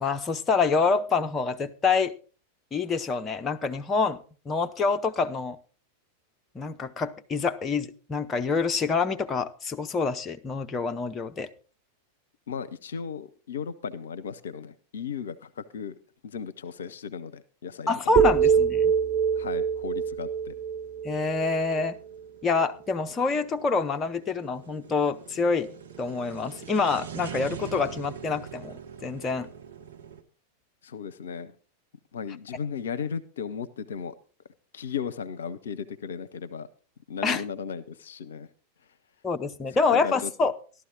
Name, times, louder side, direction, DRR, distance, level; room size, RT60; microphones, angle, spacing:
voice 1, 0.0-2.1 2.7-4.2 4.5-5.6 6.5-11.5 17.9-18.9 21.0-22.0 22.4-25.7 26.0-29.5 37.2-37.4 39.2-40.5, left 4 dB, 20° left, 7 dB, 0.8 m, -26 dB
voice 2, 12.5-16.0 16.2-18.6 19.4-20.6 30.8-31.6 32.1-34.1 34.7-36.7 37.1-38.5 39.9-40.3, left 7 dB, 65° left, 14 dB, 0.7 m, -36 dB
sound 1, 17.7-30.2, right 8 dB, 60° right, 1.5 m, -44 dB
sound 2, 18.2-22.2, right 7 dB, 30° right, 1.3 m, -25 dB
14.0 x 12.0 x 3.9 m, 0.38 s
figure-of-eight pair, 90°, 0 cm